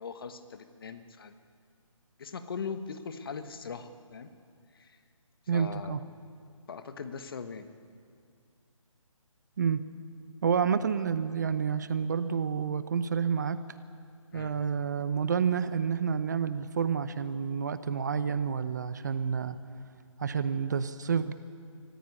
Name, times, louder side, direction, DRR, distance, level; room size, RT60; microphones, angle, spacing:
voice 1, 0.0-1.3 2.2-4.3 4.7-5.0 5.5-6.0 6.7-7.7 14.3-14.6, left 5 dB, 40° left, 9 dB, 1.3 m, -40 dB
voice 2, 5.5-6.0 9.6-9.8 10.4-13.6 14.3-19.6 20.2-21.3, right 6 dB, 35° right, 13 dB, 0.7 m, -29 dB
24.5 x 14.5 x 9.8 m, 2.3 s
hypercardioid pair, 165°, 17 cm